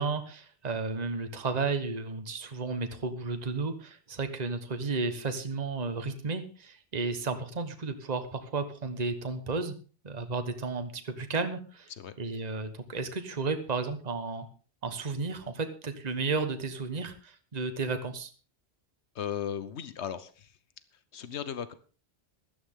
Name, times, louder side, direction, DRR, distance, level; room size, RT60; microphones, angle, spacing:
voice 1, 0.0-9.7 10.0-11.9 12.2-14.5 14.8-18.3, right 4 dB, 40° right, 8 dB, 1.3 m, -33 dB
voice 2, 19.1-20.6 21.1-21.7, left 8 dB, 85° left, 14 dB, 1.2 m, -36 dB
16.5 x 12.5 x 3.7 m, 0.36 s
omnidirectional pair, 1.1 m